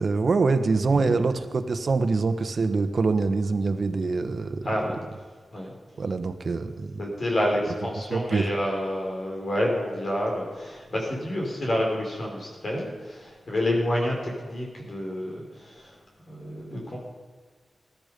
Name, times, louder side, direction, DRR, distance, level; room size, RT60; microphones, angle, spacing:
voice 1, 0.0-4.7 6.0-7.0 8.1-8.5, right 4 dB, 55° right, 8 dB, 1.2 m, -24 dB
voice 2, 4.6-4.9 5.5-5.7 7.0-16.0 16.3-17.0, left 1 dB, 50° left, -2 dB, 5.5 m, -28 dB
20.5 x 12.5 x 5.3 m, 1.5 s
wide cardioid pair, 90°, 0 cm